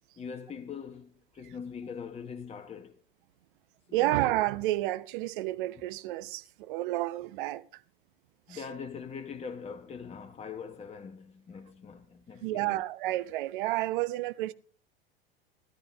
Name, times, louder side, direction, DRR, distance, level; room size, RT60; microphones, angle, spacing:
voice 1, 0.2-3.0 3.9-4.2 8.5-12.8, left 6 dB, 20° left, 1.1 m, -42 dB
voice 2, 3.9-7.8 8.5-8.6 12.4-14.5, right 16 dB, 60° right, 0.9 m, -30 dB
18.0 x 11.0 x 3.5 m
figure-of-eight pair, 80°, 30 cm